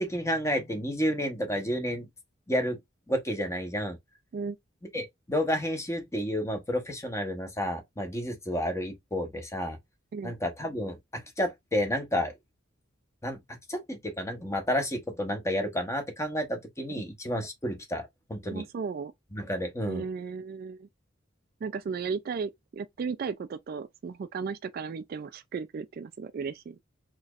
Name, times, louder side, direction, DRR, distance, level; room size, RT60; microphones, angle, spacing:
voice 1, 0.0-2.1 2.5-2.8 3.1-4.0 4.9-9.8 10.2-12.3 13.2-13.4 13.7-18.6 19.3-20.0, equal, 15° left, 0.9 m, -31 dB
voice 2, 18.5-19.1 19.9-20.9 21.6-26.8, right 5 dB, 50° right, 0.3 m, -35 dB
4.1 x 3.0 x 2.4 m
head